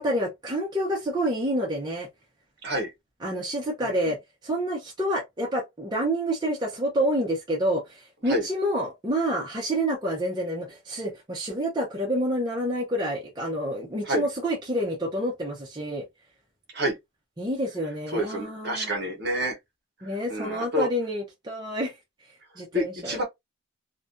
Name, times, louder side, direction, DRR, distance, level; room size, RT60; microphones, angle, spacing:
voice 1, 0.0-2.1 3.2-4.2 4.4-16.0 17.4-18.9 20.0-21.9 22.6-23.2, equal, 20° right, 0.6 m, -28 dB
voice 2, 3.8-4.1 8.2-8.5 14.0-14.3 16.7-17.0 18.1-19.6 20.0-20.9 22.7-23.2, equal, 50° right, 0.8 m, -28 dB
2.4 x 2.1 x 2.4 m
head